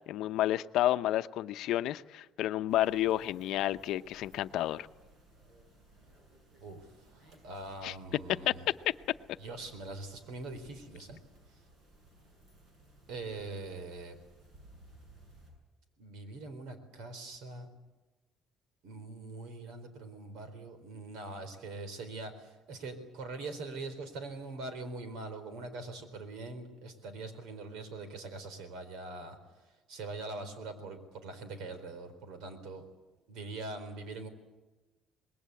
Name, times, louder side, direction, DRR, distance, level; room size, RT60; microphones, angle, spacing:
voice 1, 0.1-4.9 7.8-7.9 8.5-8.6, left 13 dB, 70° left, 11 dB, 0.7 m, -30 dB
sound 1, 2.7-15.5, right 1 dB, 55° right, 7.9 m, -60 dB
voice 2, 7.1-8.7 9.4-11.2 13.1-14.2 16.0-17.7 18.8-29.4 29.9-32.9 33.3-34.3, right 3 dB, 80° right, 10 dB, 4.1 m, -43 dB
25.0 x 21.0 x 8.3 m, 1.2 s
cardioid pair, 160°, 0 cm